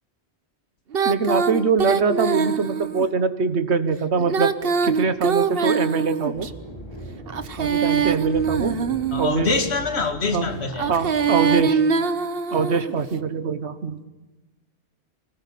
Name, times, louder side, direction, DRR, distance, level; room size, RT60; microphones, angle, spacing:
Female singing, 0.9-3.1 4.2-6.5 7.3-9.4 10.7-12.9, right 6 dB, 60° right, 1.2 m, -23 dB
voice 1, 1.0-4.5 4.8-6.5 7.5-8.8 9.2-9.5 10.3-10.5 10.9-11.8 12.5-14.0, right 5 dB, 80° right, 1.5 m, -23 dB
sound 1, 6.3-11.6, right 1 dB, 25° left, 7.2 m, -39 dB
voice 2, 9.1-10.9, left 4 dB, 75° left, 2.1 m, -24 dB
25.0 x 19.0 x 8.4 m
omnidirectional pair, 1.1 m